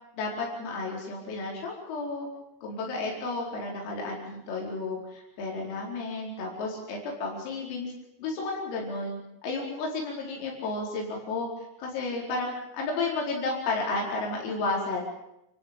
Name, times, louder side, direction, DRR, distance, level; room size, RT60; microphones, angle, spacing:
voice 1, 0.2-2.3 2.6-7.9 8.2-11.5 11.8-15.0, left 3 dB, 85° left, -2 dB, 7.2 m, -32 dB
29.0 x 14.0 x 9.0 m, 0.84 s
omnidirectional pair, 5.9 m